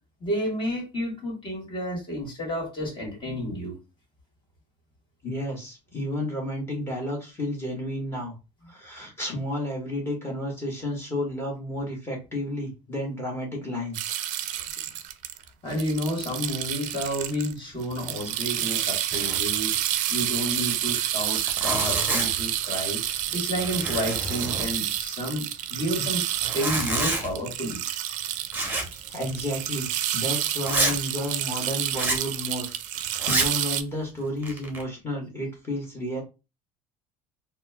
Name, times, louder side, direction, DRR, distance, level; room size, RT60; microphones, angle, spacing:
voice 1, 0.2-3.8 15.6-19.7 20.1-23.0 23.3-26.2 26.5-27.8, equal, 35° left, -1 dB, 1.7 m, -30 dB
voice 2, 5.2-8.3 8.7-14.2 18.2-18.3 19.0-19.1 21.6-21.7 25.7-26.1 29.1-36.2, left 1 dB, 15° left, -2 dB, 1.4 m, -32 dB
sound 1, 13.9-17.5 17.8-33.8, right 12 dB, 60° right, 0.4 m, -29 dB
Zipper (clothing), 19.1-19.5 19.7-19.8 20.2-20.3 20.9-21.0 21.3-22.5 23.0-23.3 23.6-25.0 26.3-27.3 28.5-29.0 29.3-29.4 29.9-30.0 30.6-31.0 31.9-32.3 33.1-33.6 34.2-34.8, right 2 dB, 15° right, 0.8 m, -28 dB
4.2 x 2.1 x 2.2 m, 0.28 s
cardioid pair, 125°, 14 cm